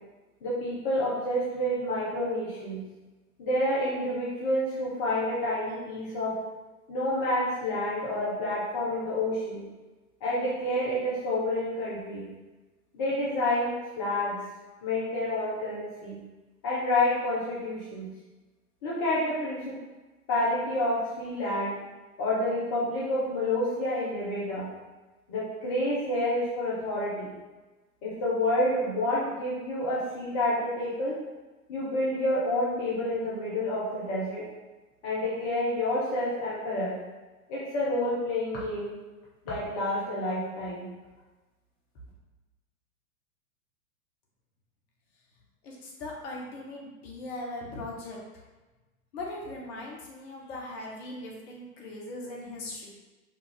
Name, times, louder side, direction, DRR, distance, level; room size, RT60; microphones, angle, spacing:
voice 1, 0.4-2.8 3.4-6.4 6.9-9.6 10.2-12.3 12.9-14.4 14.8-16.2 16.6-18.1 18.8-19.8 20.3-21.7 22.2-24.7 25.3-27.3 28.0-31.2 31.7-34.4 35.0-37.0 37.5-39.0 39.5-40.9, left 1 dB, 15° left, -7 dB, 0.3 m, -29 dB
voice 2, 45.6-48.4 49.1-52.9, left 2 dB, 40° left, -2 dB, 1.2 m, -39 dB
5.1 x 2.3 x 3.7 m, 1.2 s
figure-of-eight pair, 100°, 44 cm